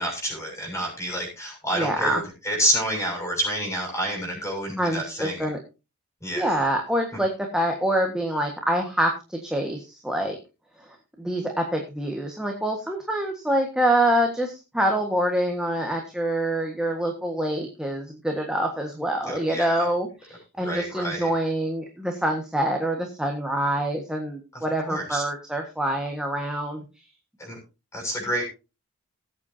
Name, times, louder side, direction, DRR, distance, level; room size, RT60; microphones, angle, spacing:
voice 1, 0.0-5.5 6.2-6.5 19.3-19.7 20.6-21.3 24.9-25.2 27.4-27.6 27.9-28.4, equal, 15° left, 1 dB, 6.8 m, -28 dB
voice 2, 1.7-2.2 4.8-5.6 6.3-10.4 10.8-26.8, right 1 dB, 5° right, 1 dB, 1.5 m, -26 dB
19.5 x 8.4 x 2.8 m, 0.29 s
head